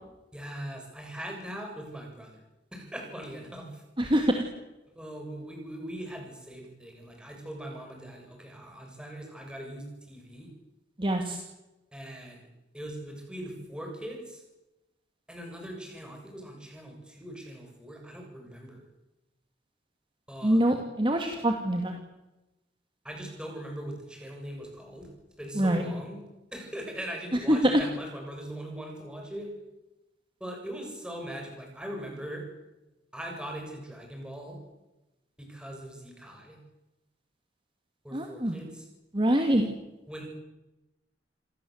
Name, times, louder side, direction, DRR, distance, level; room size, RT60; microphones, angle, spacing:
voice 1, 0.3-2.4 2.7-3.8 5.0-10.5 11.9-12.5 12.7-14.4 15.3-18.8 20.3-20.6 23.0-25.1 25.4-26.2 26.5-29.5 30.4-32.4 33.1-34.6 35.4-36.6 38.0-38.9 40.1-40.3, right 1 dB, 5° right, 1 dB, 7.3 m, -40 dB
voice 2, 4.0-4.4 11.0-11.4 20.4-22.0 25.6-25.8 27.5-27.8 38.1-38.6 39.1-39.7, right 1 dB, 25° right, 3 dB, 2.2 m, -24 dB
27.5 x 18.5 x 8.0 m, 1.0 s
head